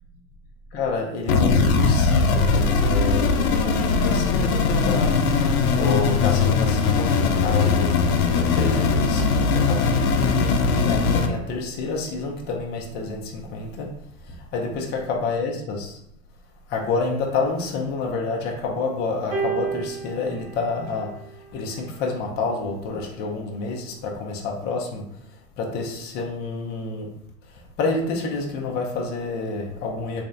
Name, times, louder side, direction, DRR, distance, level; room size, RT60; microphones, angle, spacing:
voice 1, 0.7-5.3 5.8-7.9 8.3-13.9 14.5-16.0 16.7-21.1 21.5-25.0 25.6-27.1 27.8-30.2, left 3 dB, 25° left, 0 dB, 0.5 m, -28 dB
sound 1, 1.3-11.3, left 4 dB, 85° left, 0.6 m, -20 dB
sound 2, 19.3-21.8 22.8-23.0, right 5 dB, 45° right, 1.0 m, -32 dB
3.5 x 3.3 x 2.6 m, 0.74 s
supercardioid pair, 135°, 41 cm